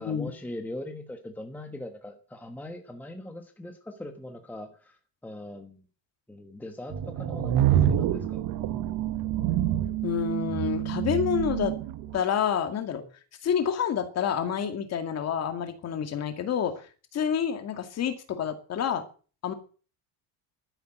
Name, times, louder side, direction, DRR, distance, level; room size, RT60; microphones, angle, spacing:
voice 1, 0.0-5.8 6.3-8.4, left 1 dB, 5° left, 5 dB, 1.3 m, -41 dB
sound 1, 6.9-12.2, right 11 dB, 50° right, 1.6 m, -27 dB
voice 2, 10.0-11.7 12.1-13.0 13.4-16.7 17.1-19.0 19.4-19.5, left 8 dB, 35° left, 7 dB, 2.3 m, -28 dB
12.5 x 10.5 x 7.8 m, 0.39 s
cardioid pair, 180°, 45 cm